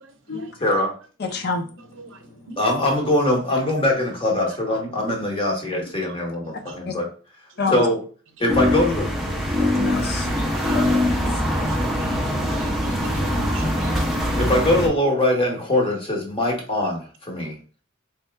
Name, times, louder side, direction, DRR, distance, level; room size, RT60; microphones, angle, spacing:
voice 1, 0.6-0.9 2.6-7.1 7.7-8.0 8.4-9.1 14.4-17.5, left 1 dB, 25° left, 1.0 m, -22 dB
voice 2, 1.2-1.7 6.9-7.0 7.6-7.8 9.6-11.4, left 4 dB, 50° left, 0.5 m, -29 dB
sound 1, 8.5-14.9, left 1 dB, ahead, 0.6 m, -23 dB
voice 3, 11.3-12.2 12.5-14.4, right 3 dB, 60° right, 0.6 m, -42 dB
4.1 x 3.4 x 2.2 m
head